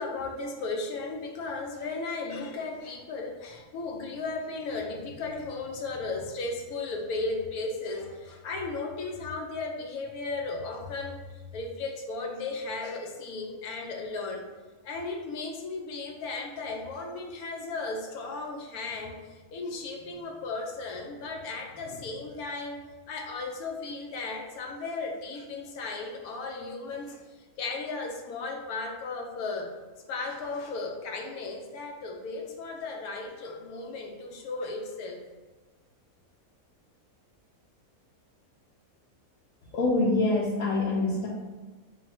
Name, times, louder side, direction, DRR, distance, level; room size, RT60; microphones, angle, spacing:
voice 1, 0.0-14.5 14.8-29.7 30.1-35.2, left 3 dB, 90° left, 1 dB, 1.1 m, -35 dB
voice 2, 39.7-41.3, left 2 dB, 70° left, -4 dB, 0.9 m, -25 dB
4.0 x 2.2 x 4.1 m, 1.3 s
omnidirectional pair, 1.5 m